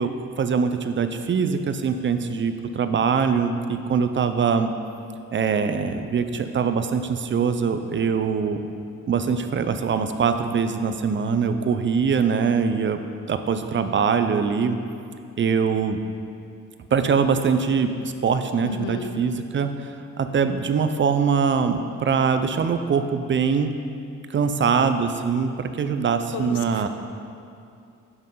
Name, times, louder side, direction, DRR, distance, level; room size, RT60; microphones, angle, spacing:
voice 1, 0.0-4.7 5.3-8.6 9.1-13.0 13.3-14.8 15.4-16.0 16.9-23.7 24.3-26.9, right 6 dB, 40° right, 8 dB, 0.6 m, -23 dB
voice 2, 18.6-19.2 26.3-26.9, left 6 dB, 85° left, 7 dB, 0.7 m, -32 dB
9.2 x 8.0 x 3.8 m, 2.5 s
cardioid pair, 90°, 30 cm